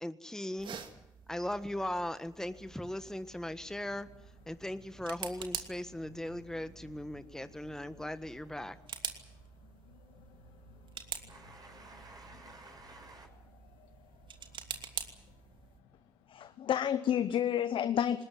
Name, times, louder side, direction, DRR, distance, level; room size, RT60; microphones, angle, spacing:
voice 1, 0.0-0.8 1.3-4.1 4.5-8.8, left 1 dB, 5° left, 11 dB, 1.4 m, -38 dB
sound 1, 0.6-15.8, right 7 dB, 60° right, 2.7 m, -47 dB
sound 2, 2.4-16.6, left 5 dB, 85° left, 1.7 m, -61 dB
voice 2, 11.3-13.3, right 2 dB, 45° right, 2 dB, 6.9 m, -52 dB
voice 3, 16.3-18.2, left 9 dB, 65° left, 13 dB, 0.9 m, -30 dB
20.0 x 20.0 x 9.7 m, 0.86 s
hypercardioid pair, 50°, 9 cm